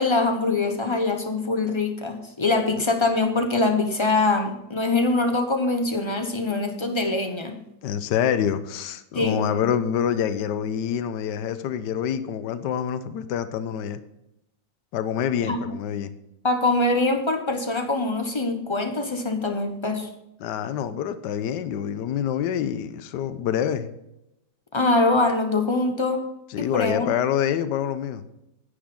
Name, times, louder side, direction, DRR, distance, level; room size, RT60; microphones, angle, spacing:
voice 1, 0.0-7.5 9.1-9.5 15.4-15.6 16.4-20.1 24.7-26.2 26.6-27.1, left 3 dB, 25° left, 6 dB, 0.7 m, -23 dB
voice 2, 7.8-14.0 14.9-16.1 20.4-23.9 26.5-28.3, left 9 dB, 75° left, 12 dB, 1.3 m, -26 dB
9.8 x 9.6 x 3.7 m, 0.86 s
omnidirectional pair, 1.9 m